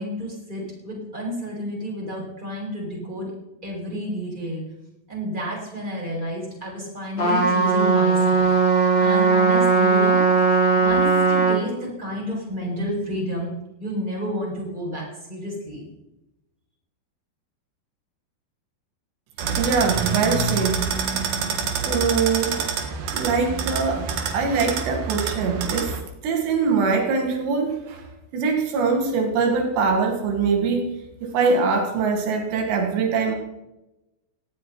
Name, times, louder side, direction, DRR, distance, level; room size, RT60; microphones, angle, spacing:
voice 1, 0.0-3.3 3.6-4.6 5.1-8.5 9.0-13.5 13.8-15.9, equal, 10° right, -3 dB, 7.3 m, -30 dB
Trumpet, 7.2-11.6, right 4 dB, 30° left, 4.6 m, -18 dB
sound 1, 19.4-26.0, right 5 dB, 60° right, 3.3 m, -27 dB
voice 2, 19.5-20.8 21.8-22.6 23.1-26.0 26.2-28.0 28.3-30.9 31.2-33.4, right 5 dB, 85° right, 3 dB, 4.3 m, -23 dB
18.0 x 15.0 x 4.7 m, 0.94 s
omnidirectional pair, 4.8 m